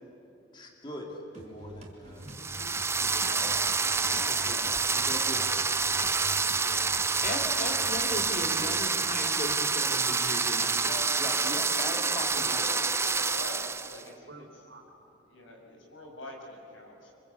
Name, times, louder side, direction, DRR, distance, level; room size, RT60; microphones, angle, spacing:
voice 1, 0.5-2.2 2.9-4.6 4.9-5.5 6.7-6.9 11.2-12.9, left 1 dB, 25° left, 1 dB, 2.8 m, -41 dB
sound 1, 1.3-8.9, right 1 dB, 35° right, 3.0 m, -47 dB
voice 2, 2.0-2.7 3.1-3.6 11.3-12.8 14.3-15.0, right 1 dB, 60° right, 3 dB, 3.8 m, -51 dB
sound 2, 2.3-14.0, right 4 dB, 15° right, 0.5 m, -28 dB
voice 3, 3.1-5.4 5.7-7.0 10.8-11.1 11.4-12.1 12.5-14.4 15.3-17.2, left 1 dB, 75° left, 0 dB, 6.5 m, -46 dB
voice 4, 7.2-10.9, left 1 dB, 40° left, 2 dB, 3.3 m, -36 dB
27.0 x 25.0 x 8.4 m, 2.8 s
head